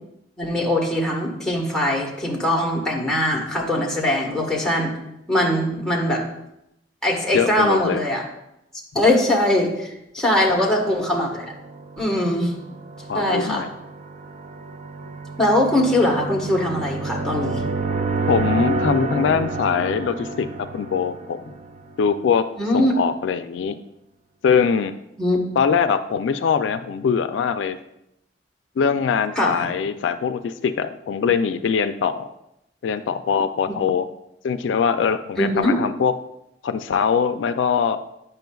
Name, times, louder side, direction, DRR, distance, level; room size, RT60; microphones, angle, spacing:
voice 1, 0.4-4.9 5.3-6.2 7.0-8.2 8.9-11.5 12.0-12.5 13.1-13.6 15.4-17.6 22.6-22.9 25.2-25.4 29.4-29.6 33.7-33.8 35.4-35.8, left 1 dB, 5° left, -3 dB, 1.3 m, -21 dB
voice 2, 7.3-8.0 10.5-10.6 13.1-13.7 18.3-20.5 20.7-21.5 22.0-22.5 22.7-23.8 24.4-24.9 25.6-27.8 28.8-32.3 32.8-34.1 34.4-36.2 36.6-38.0, left 6 dB, 85° left, 10 dB, 0.3 m, -22 dB
sound 1, 11.4-22.2, right 3 dB, 40° right, 0.4 m, -29 dB
9.1 x 5.6 x 2.3 m, 0.83 s
head